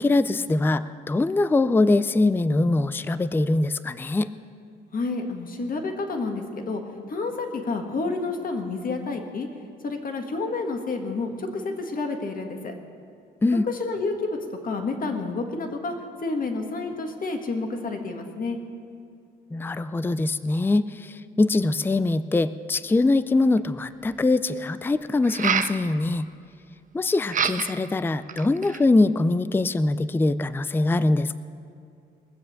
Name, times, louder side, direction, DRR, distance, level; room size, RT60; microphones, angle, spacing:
voice 1, 0.0-4.3 13.4-13.7 19.5-26.3 26.9-31.4, left 2 dB, 10° left, 14 dB, 0.4 m, -23 dB
voice 2, 4.9-6.8 7.1-9.5 9.8-12.7 13.7-14.4 14.6-15.9 16.2-18.6, left 3 dB, 45° left, 4 dB, 1.8 m, -29 dB
sound 1, 23.6-23.7 25.2-25.8 27.3-27.9 28.3-28.9, right 7 dB, 40° right, 0.6 m, -26 dB
21.0 x 7.5 x 6.5 m, 2.3 s
cardioid pair, 90°, 20 cm